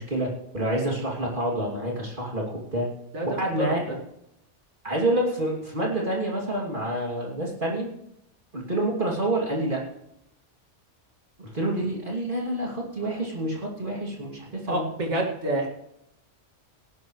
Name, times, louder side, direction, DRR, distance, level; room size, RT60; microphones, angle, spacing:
voice 1, 0.0-2.9 3.2-4.0 4.8-7.9 8.5-9.8 11.4-14.8, right 1 dB, 45° right, -2 dB, 3.0 m, -28 dB
voice 2, 3.1-4.0 14.7-15.7, right 1 dB, 70° right, -1 dB, 2.6 m, -28 dB
18.5 x 11.5 x 3.2 m, 0.81 s
omnidirectional pair, 1.3 m